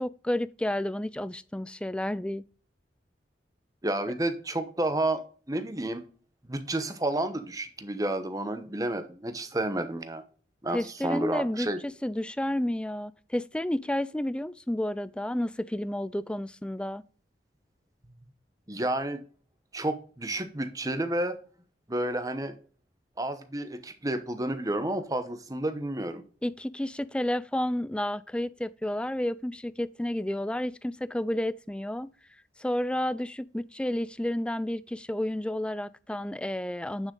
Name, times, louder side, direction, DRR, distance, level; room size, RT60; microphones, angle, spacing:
voice 1, 0.0-2.4 10.7-17.0 26.4-32.1 32.6-37.1, left 1 dB, 5° left, 0.3 m, -31 dB
voice 2, 3.8-5.2 5.5-6.0 6.5-10.2 10.6-11.8 18.7-19.2 19.7-21.4 21.9-22.5 23.2-26.2, right 1 dB, 20° right, 1.0 m, -30 dB
9.6 x 6.3 x 3.8 m
head